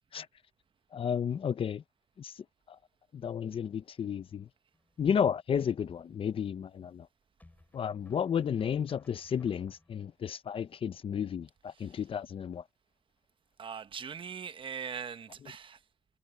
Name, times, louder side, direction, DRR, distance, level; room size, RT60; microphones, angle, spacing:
voice 1, 0.9-1.8 2.2-2.3 3.1-4.5 5.0-7.1 7.7-12.6, left 7 dB, 70° left, 0.7 m, -32 dB
sound 1, 4.7-5.3 7.4-10.1, left 2 dB, 15° left, 6.6 m, -61 dB
voice 2, 13.6-15.8, right 7 dB, 65° right, 0.9 m, -41 dB
wide cardioid pair, 105°, 10 cm